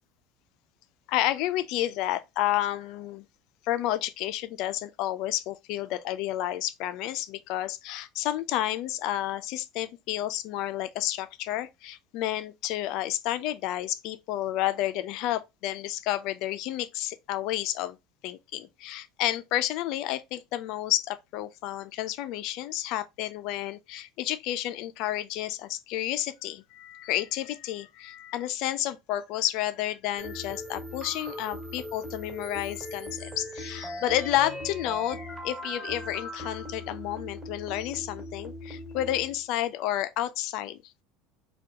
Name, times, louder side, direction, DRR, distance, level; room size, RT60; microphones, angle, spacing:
voice 1, 1.1-3.2 3.7-18.0 18.2-40.8, left 13 dB, 65° left, 0.3 m, -31 dB
sound 1, 30.2-39.5, left 1 dB, 20° right, 1.7 m, -39 dB
2.7 x 2.2 x 3.5 m
supercardioid pair, 115°, 0 cm